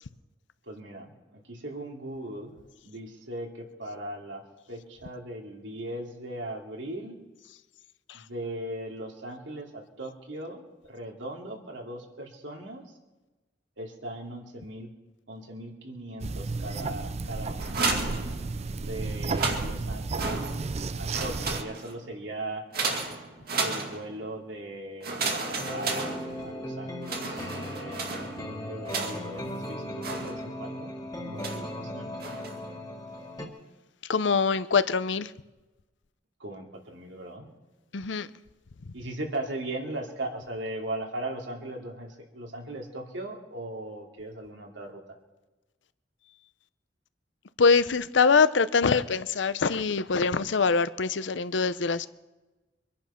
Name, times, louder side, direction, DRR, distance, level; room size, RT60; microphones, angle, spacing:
voice 1, 0.7-2.5 2.8-7.2 8.1-12.8 13.8-14.9 15.3-17.8 18.8-20.4 20.9-22.7 23.6-28.0 28.5-30.9 31.2-32.2 36.4-37.5 38.9-45.0, right 1 dB, 90° right, 2.7 m, -38 dB
sound 1, 16.2-21.6, right 3 dB, 35° right, 0.5 m, -33 dB
sound 2, 17.6-18.8 19.2-20.8 21.1-22.1 22.7-24.3 25.0-26.7 27.0-29.4 30.0-30.7 31.4-31.8 32.2-32.7, right 3 dB, 55° right, 2.2 m, -33 dB
sound 3, 25.6-33.5, left 1 dB, 20° left, 1.9 m, -37 dB
voice 2, 34.1-35.3 37.9-38.3 38.9-39.0 47.6-52.1, left 5 dB, 80° left, 0.7 m, -24 dB
24.0 x 10.5 x 5.8 m
head